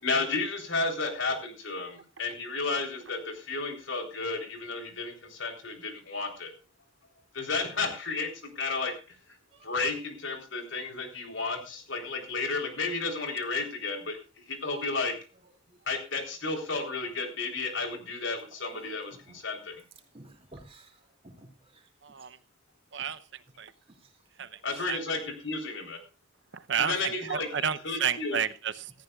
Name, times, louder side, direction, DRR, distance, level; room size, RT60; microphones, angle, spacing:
voice 1, 0.0-6.5 7.3-8.3 8.6-8.9 9.3-9.4 9.6-15.1 15.9-19.8 24.6-26.0 26.9-27.5 27.8-28.4, left 3 dB, 65° left, 3.7 m, -32 dB
voice 2, 18.7-19.3 20.1-21.9 23.9-24.1 24.4-24.6, right 1 dB, 30° right, 2.6 m, -53 dB
voice 3, 22.0-22.4 22.9-23.7 24.4-24.6 24.9-25.0 26.5-28.9, right 7 dB, 60° right, 0.7 m, -31 dB
17.0 x 14.0 x 2.4 m
head